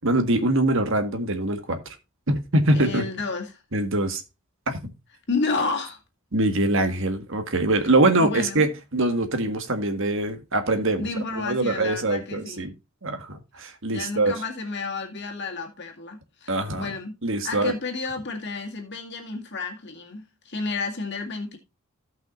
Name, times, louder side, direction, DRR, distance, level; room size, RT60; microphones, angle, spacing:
voice 1, 0.0-1.8 2.3-3.0 3.7-4.2 4.7-4.8 6.3-11.1 11.4-12.7 13.0-14.3 16.5-16.9 17.2-17.7, right 2 dB, 60° right, 1.6 m, -23 dB
voice 2, 2.7-3.6 5.3-6.0 8.2-8.7 11.0-12.7 13.9-17.2 17.4-21.6, left 3 dB, 50° left, 2.0 m, -31 dB
16.5 x 5.7 x 2.5 m
head